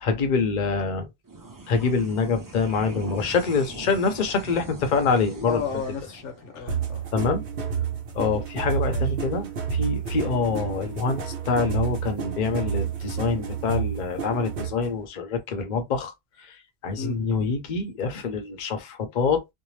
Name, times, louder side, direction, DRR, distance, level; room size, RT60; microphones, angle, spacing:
voice 1, 0.0-1.1 1.7-5.6 7.1-7.4 8.1-16.1 16.4-16.6 16.8-19.5, left 4 dB, 50° left, 0.6 m, -25 dB
sound 1, 1.2-8.0, right 3 dB, 25° right, 0.4 m, -42 dB
voice 2, 5.5-7.1 8.9-9.1 17.0-17.2, left 5 dB, 75° left, 1.0 m, -33 dB
sound 2, 6.7-14.9, right 7 dB, 50° right, 0.8 m, -29 dB
2.6 x 2.0 x 3.1 m
omnidirectional pair, 1.3 m